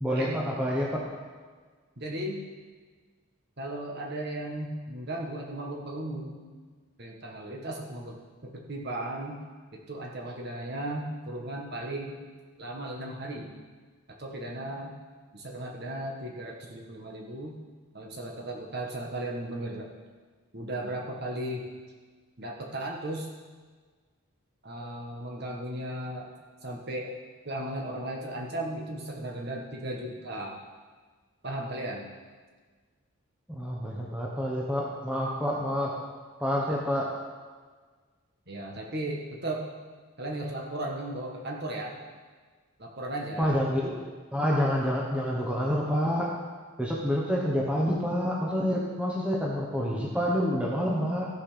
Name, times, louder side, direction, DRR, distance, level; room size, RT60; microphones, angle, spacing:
voice 1, 0.0-1.1 33.5-35.9 36.4-37.1 43.4-43.9 44.3-46.3 46.8-51.3, equal, 5° right, -3 dB, 1.2 m, -28 dB
voice 2, 2.0-2.4 3.6-6.4 7.0-9.4 9.9-12.2 12.6-13.5 14.2-15.0 15.3-17.5 17.9-19.9 20.5-21.6 22.4-23.3 24.6-26.3 26.6-27.1 27.4-30.6 31.4-32.1 38.5-39.6 40.2-41.9 42.8-43.6, right 1 dB, 50° right, -1 dB, 1.6 m, -36 dB
15.5 x 5.7 x 5.2 m, 1.5 s
head